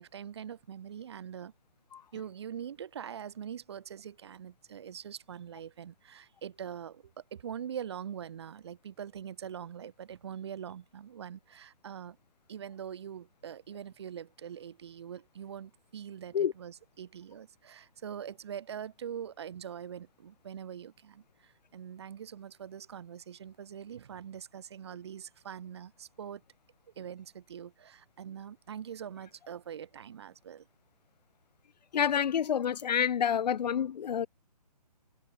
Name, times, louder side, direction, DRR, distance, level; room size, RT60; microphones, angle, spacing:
voice 1, 0.0-1.5 2.1-12.2 12.5-26.4 27.0-30.7, right 8 dB, 40° right, 1.6 m, -43 dB
voice 2, 31.9-34.3, left 8 dB, 75° left, 0.5 m, -28 dB
hypercardioid pair, 170°, 21 cm